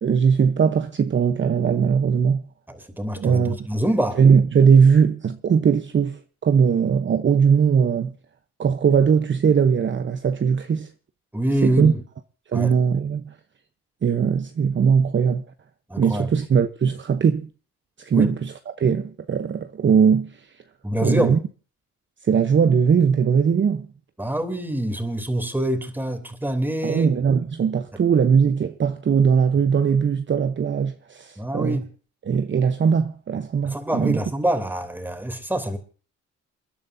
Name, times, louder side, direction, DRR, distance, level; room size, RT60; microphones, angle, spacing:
voice 1, 0.0-2.4 3.2-3.6 4.2-8.1 8.6-10.9 11.6-11.9 12.5-13.3 14.0-15.4 16.0-17.5 18.0-18.5 18.8-20.5 21.0-21.4 22.2-23.9 26.8-31.8 32.2-34.2, right 6 dB, 40° right, 0.9 m, -19 dB
voice 2, 2.7-4.2 11.3-12.0 12.5-12.7 15.9-16.3 18.1-18.3 20.8-21.4 24.2-27.2 31.4-31.9 33.6-35.8, right 1 dB, 5° right, 3.1 m, -25 dB
29.0 x 11.0 x 2.7 m
cardioid pair, 90°, 30 cm